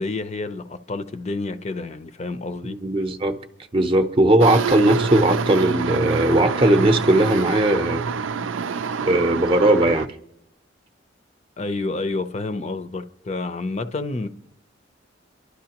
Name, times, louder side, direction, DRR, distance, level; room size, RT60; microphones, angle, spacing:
voice 1, 0.0-2.8 11.6-14.3, left 3 dB, 35° left, 0.6 m, -29 dB
voice 2, 2.7-3.4 3.7-8.0 9.0-10.1, right 1 dB, 25° right, 0.7 m, -18 dB
sound 1, 4.4-10.1, right 5 dB, 85° right, 0.5 m, -26 dB
27.0 x 11.5 x 2.9 m
head